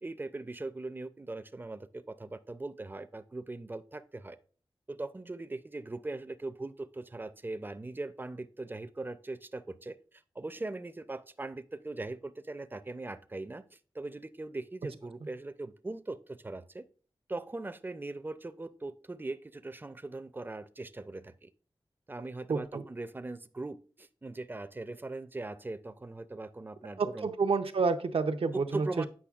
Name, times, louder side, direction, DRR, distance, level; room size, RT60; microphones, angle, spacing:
voice 1, 0.0-4.4 4.9-16.8 17.3-21.5 22.1-27.3 28.5-29.1, right 2 dB, 20° right, 12 dB, 0.4 m, -40 dB
voice 2, 22.5-22.8 27.0-28.9, right 4 dB, 75° right, 8 dB, 0.6 m, -29 dB
8.5 x 5.6 x 2.4 m, 0.41 s
cardioid pair, 55°, 10 cm